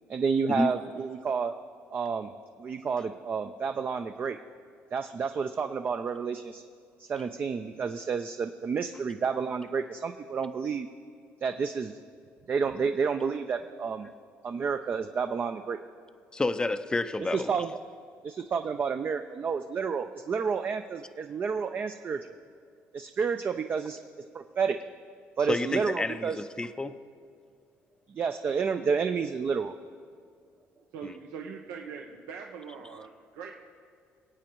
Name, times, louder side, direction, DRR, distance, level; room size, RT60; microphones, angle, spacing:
voice 1, 0.1-1.5 1.9-2.3 2.6-4.4 4.9-6.6 7.0-10.9 11.4-12.0 12.5-14.1 14.4-15.8 17.3-17.7 18.2-22.4 22.9-24.0 24.3-24.8 25.4-26.4 28.1-29.7, right 5 dB, 40° right, 7 dB, 0.5 m, -30 dB
voice 2, 16.3-17.5 25.5-26.9 31.0-31.1, left 2 dB, 15° left, 10 dB, 0.5 m, -29 dB
voice 3, 30.9-33.6, right 6 dB, 85° right, 1 dB, 0.8 m, -42 dB
24.5 x 8.5 x 3.1 m, 2.3 s
cardioid pair, 100°, 5 cm